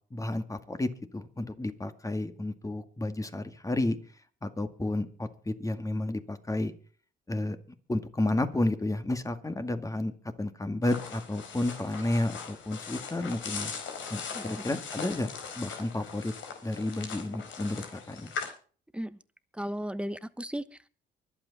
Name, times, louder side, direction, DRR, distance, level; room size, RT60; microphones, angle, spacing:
voice 1, 0.1-4.0 4.4-6.7 7.3-7.6 7.9-10.1 10.4-13.7 14.1-15.3 15.6-16.3 16.6-18.3, left 2 dB, 15° left, 9 dB, 2.1 m, -31 dB
sound 1, 10.8-18.5, left 6 dB, 75° left, 4.5 m, -40 dB
voice 2, 14.3-14.7 18.9-19.2 19.5-20.9, equal, 5° right, 14 dB, 1.1 m, -36 dB
24.0 x 8.2 x 4.2 m, 0.41 s
cardioid pair, 90°, 20 cm